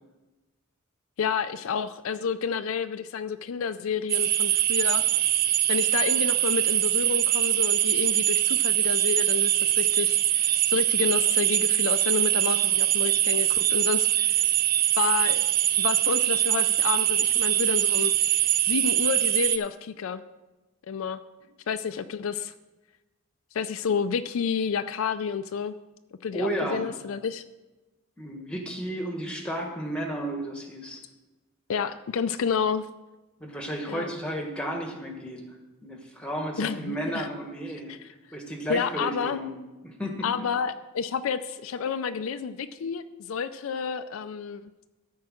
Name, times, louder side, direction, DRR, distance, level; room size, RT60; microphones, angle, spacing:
voice 1, 1.2-5.0 5.7-14.4 14.9-15.4 15.8-18.1 18.7-20.2 20.9-21.2 21.7-22.5 23.5-25.8 26.2-27.4 31.7-32.9 33.9-34.1 36.6-37.3 37.9-38.1 38.7-39.4 40.2-44.7, left 6 dB, 65° left, 11 dB, 0.4 m, -30 dB
sound 1, 4.1-19.6, right 12 dB, 45° right, 0.4 m, -23 dB
voice 2, 26.3-26.8 28.2-31.0 33.4-35.6 35.8-39.5 39.8-40.4, right 1 dB, 5° left, 2 dB, 1.3 m, -33 dB
13.0 x 4.7 x 6.2 m, 1.1 s
head